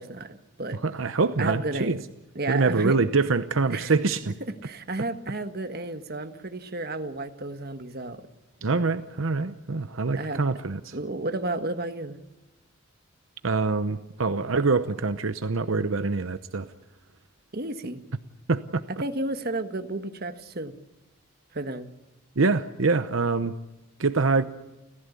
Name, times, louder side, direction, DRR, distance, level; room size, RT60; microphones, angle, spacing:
voice 1, 0.0-0.8 1.4-2.0 2.3-3.0 3.7-3.9 4.6-8.2 10.2-10.4 10.9-12.2 17.5-18.0 18.9-20.7 21.5-21.9, right 2 dB, 50° right, 1.5 m, -32 dB
voice 2, 0.8-2.0 2.5-4.3 8.6-11.0 13.4-16.7 18.5-18.8 22.4-23.5 24.0-24.4, right 4 dB, 80° right, 0.9 m, -25 dB
29.5 x 15.0 x 8.4 m
head